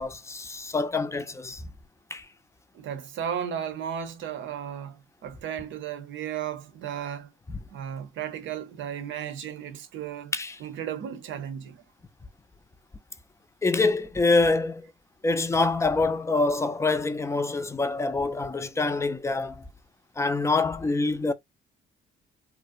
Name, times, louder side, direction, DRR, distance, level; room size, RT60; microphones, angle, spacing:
voice 1, 0.0-1.6 2.1-2.3 7.5-7.6 10.3-10.6 13.6-14.9 15.2-19.6 20.2-21.3, left 3 dB, 15° left, 0.4 m, -25 dB
voice 2, 2.7-7.3 7.7-10.3 10.6-11.8, right 9 dB, 75° right, 0.6 m, -34 dB
2.5 x 2.0 x 2.4 m
cardioid pair, 90°, 20 cm